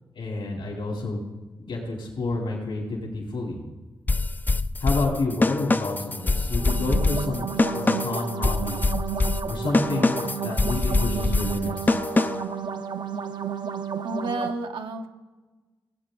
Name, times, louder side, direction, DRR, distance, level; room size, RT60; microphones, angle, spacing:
voice 1, 0.1-1.3 1.6-3.6 4.8-8.8 9.5-12.0, left 2 dB, 75° left, -1 dB, 3.3 m, -29 dB
sound 1, 4.1-12.6, left 3 dB, 20° left, 0.4 m, -24 dB
sound 2, 6.5-14.5, right 7 dB, 60° right, 0.7 m, -32 dB
voice 2, 14.0-15.1, right 2 dB, 80° right, 4 dB, 1.0 m, -30 dB
17.5 x 8.4 x 3.8 m, 1.2 s
cardioid pair, 65°, 9 cm